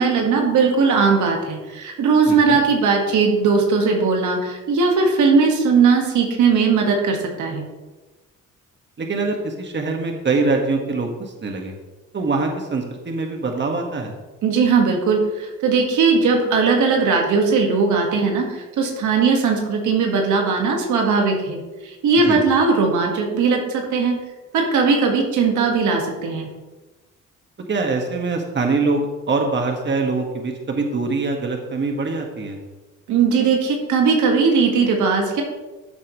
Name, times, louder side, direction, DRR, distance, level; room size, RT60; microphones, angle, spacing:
voice 1, 0.0-7.7 14.4-24.2 24.5-26.5 33.1-35.4, right 4 dB, 80° right, 2 dB, 1.8 m, -18 dB
voice 2, 2.3-2.6 9.0-11.7 12.1-14.1 22.3-22.4 27.7-32.6, right 3 dB, 35° right, 3 dB, 1.7 m, -23 dB
13.5 x 7.3 x 3.2 m, 1.2 s
cardioid pair, 90°, 30 cm